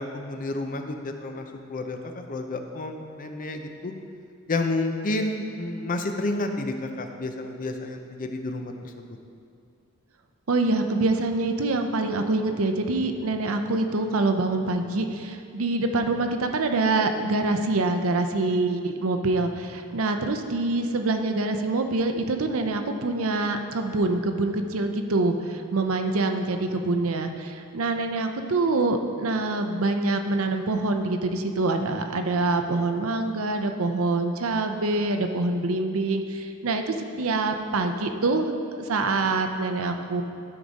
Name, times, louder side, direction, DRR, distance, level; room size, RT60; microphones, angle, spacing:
voice 1, 0.0-2.0 2.3-3.9 4.5-8.7 9.0-9.1, left 2 dB, 40° left, 5 dB, 0.6 m, -30 dB
voice 2, 10.5-40.2, right 2 dB, 70° right, 6 dB, 0.6 m, -25 dB
12.5 x 5.0 x 4.1 m, 2.4 s
head